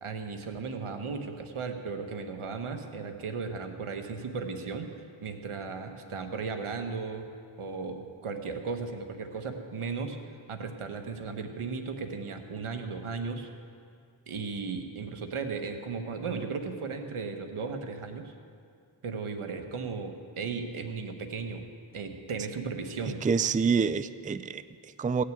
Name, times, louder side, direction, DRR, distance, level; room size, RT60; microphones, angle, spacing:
voice 1, 0.0-7.3 7.6-10.2 10.5-13.5 14.3-18.3 19.0-21.6 21.9-23.3, right 4 dB, 90° right, 6 dB, 1.3 m, -36 dB
voice 2, 23.1-25.2, right 5 dB, 20° right, 14 dB, 0.4 m, -27 dB
17.0 x 6.6 x 9.2 m, 2.4 s
wide cardioid pair, 70°, 49 cm